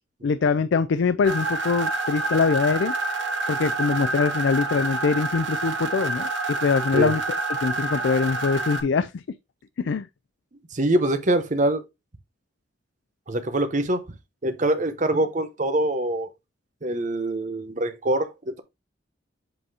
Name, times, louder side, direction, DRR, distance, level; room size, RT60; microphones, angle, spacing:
voice 1, 0.2-2.9 3.5-7.2 7.5-9.2 9.8-10.1, left 5 dB, 75° left, 0.4 m, -23 dB
sound 1, 1.2-8.8, right 3 dB, 90° right, 1.7 m, -28 dB
voice 2, 10.7-11.8 13.3-14.0 14.4-16.3 16.8-18.6, right 1 dB, 40° right, 0.9 m, -24 dB
7.9 x 2.7 x 4.8 m
head